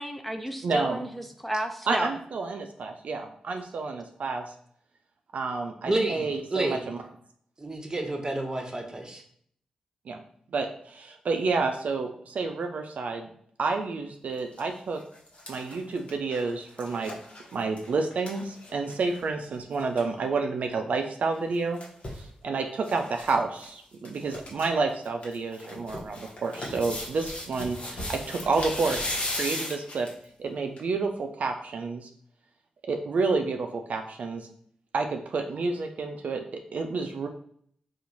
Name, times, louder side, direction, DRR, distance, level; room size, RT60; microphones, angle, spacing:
voice 1, 0.0-2.1, right 1 dB, 5° left, 5 dB, 0.4 m, -32 dB
voice 2, 0.6-1.0 1.9-4.4 5.3-7.0 10.1-10.2 10.5-13.3 13.6-15.0 15.5-17.1 17.5-21.8 22.1-30.1 30.4-32.1 32.8-34.5 34.9-37.3, right 4 dB, 70° right, 5 dB, 0.4 m, -29 dB
voice 3, 5.8-6.8 7.6-9.2, right 2 dB, 25° right, 3 dB, 0.9 m, -30 dB
sound 1, 14.3-14.6 15.0-19.2 19.5-19.6 19.8-20.1 21.3-22.2 22.8-23.3 23.6-23.7 24.0-24.7 25.0-30.2 30.8-30.9, left 1 dB, 55° left, 1.1 m, -37 dB
2.9 x 2.4 x 3.8 m, 0.63 s
supercardioid pair, 40°, 3 cm